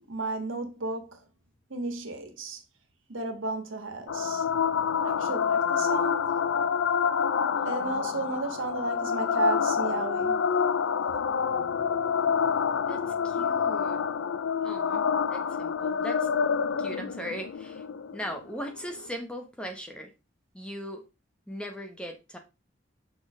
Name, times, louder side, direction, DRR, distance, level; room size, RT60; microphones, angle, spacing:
voice 1, 0.1-1.3 1.7-2.6 3.1-4.5 5.0-6.4 7.7-10.4, right 3 dB, 85° right, 1.7 m, -34 dB
sound 1, 4.1-19.1, left 6 dB, 85° left, 0.5 m, -27 dB
voice 2, 12.9-14.0 14.6-15.0 15.3-16.3 16.8-17.8 18.1-20.1 20.5-21.0 21.5-22.4, equal, 5° left, 1.1 m, -39 dB
6.2 x 4.8 x 4.9 m
head